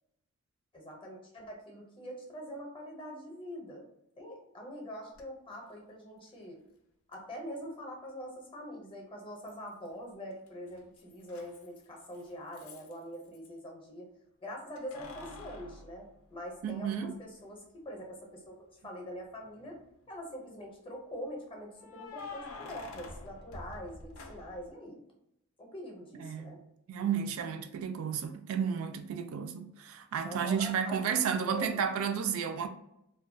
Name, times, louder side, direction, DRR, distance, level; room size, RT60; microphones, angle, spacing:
voice 1, 0.7-3.9 4.2-6.6 7.1-14.1 14.4-19.8 20.1-25.0 25.6-26.6 30.2-31.8, equal, 25° left, 0.6 m, -44 dB
Keys jangling, 5.1-5.2 7.1-7.2 9.5-10.0 10.3-13.5 14.8-16.9 17.4-17.5 19.2-19.8 21.7-24.7, left 3 dB, 75° left, 0.4 m, -48 dB
voice 2, 16.6-17.2 26.2-26.5 26.9-32.7, right 7 dB, 75° right, 0.3 m, -32 dB
2.2 x 2.1 x 2.5 m
head